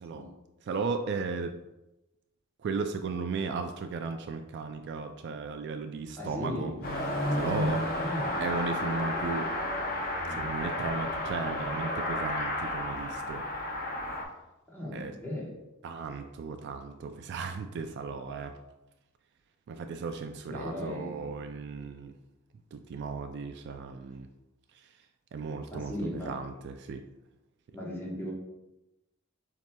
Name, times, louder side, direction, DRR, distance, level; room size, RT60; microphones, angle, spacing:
voice 1, 0.7-1.5 2.6-6.7 7.3-7.8 8.4-9.5 10.3-13.4 14.9-15.1 15.8-18.5 19.7-22.1 22.7-24.3 25.3-27.0, right 4 dB, 55° right, 7 dB, 0.3 m, -35 dB
voice 2, 6.2-6.8 8.0-8.4 14.7-15.6 20.5-21.5 25.7-26.4 27.7-28.3, left 1 dB, 10° left, -4 dB, 1.1 m, -37 dB
Car passing by / Accelerating revving vroom, 6.8-14.2, left 1 dB, 45° left, 0.7 m, -32 dB
7.2 x 2.8 x 2.2 m, 0.96 s
head